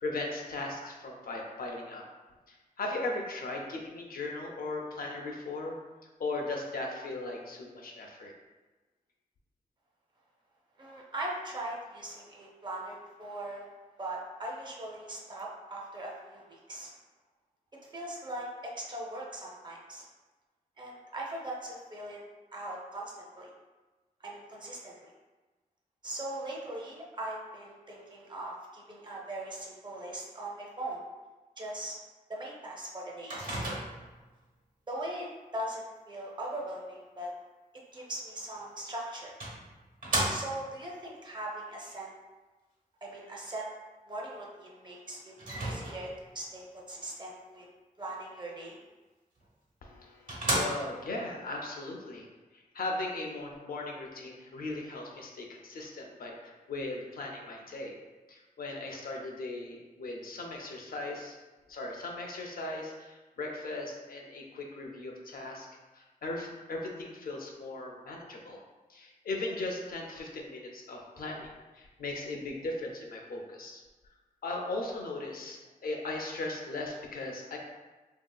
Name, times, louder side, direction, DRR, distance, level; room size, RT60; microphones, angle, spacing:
voice 1, 0.0-2.1 2.5-5.8 6.2-8.3 49.8-52.3 52.5-58.0 58.3-61.4 61.7-65.7 65.9-68.6 68.9-73.8 74.4-77.6, left 2 dB, 85° left, 0 dB, 0.5 m, -38 dB
voice 2, 10.8-13.7 14.0-16.9 17.9-20.1 20.8-22.2 22.5-23.5 24.2-25.1 26.0-31.0 31.6-32.0 32.3-33.4 34.9-37.3 37.7-39.4 40.3-42.1 43.0-43.7 44.1-45.3 45.6-47.7 48.0-48.8, right 1 dB, 30° right, -3 dB, 0.5 m, -40 dB
Microwave oven, 33.3-34.2 38.5-38.6 39.4-40.8 45.4-46.3 49.4-49.5 49.9-50.0 50.3-51.1, right 1 dB, 70° right, 1.0 m, -33 dB
3.1 x 2.7 x 2.3 m, 1.2 s
wide cardioid pair, 160°, 15 cm